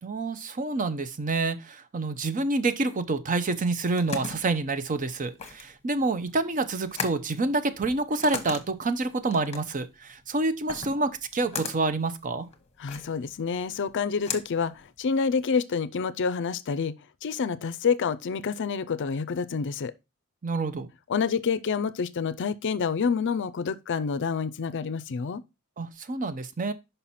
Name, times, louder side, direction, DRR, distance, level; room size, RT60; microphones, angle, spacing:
voice 1, 0.0-12.5 20.4-20.9 25.8-26.7, right 3 dB, 35° right, 0.6 m, -28 dB
sound 1, 3.8-15.4, left 5 dB, 30° left, 1.0 m, -39 dB
voice 2, 12.8-16.9 17.2-19.9 21.1-25.4, left 5 dB, 55° left, 0.5 m, -28 dB
5.7 x 5.4 x 4.1 m
head